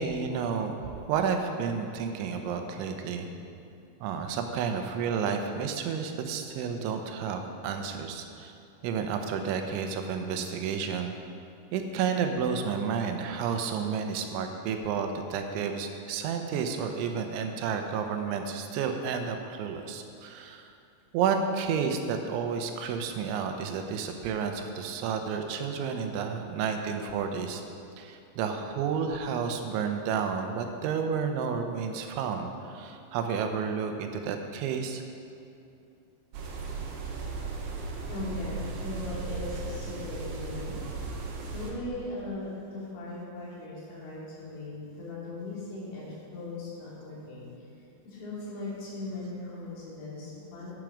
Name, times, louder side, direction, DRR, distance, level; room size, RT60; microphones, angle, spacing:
voice 1, 0.0-3.3 4.0-8.5 8.8-11.2 11.7-20.7 21.1-27.6 28.0-35.0, right 6 dB, 90° right, 5 dB, 3.2 m, -31 dB
sound 1, 36.3-41.7, right 4 dB, 70° right, 2.8 m, -36 dB
voice 2, 38.1-40.8 41.5-47.4 48.1-50.7, left 2 dB, 75° left, -7 dB, 5.2 m, -38 dB
11.0 x 9.2 x 5.0 m, 2.6 s
omnidirectional pair, 5.3 m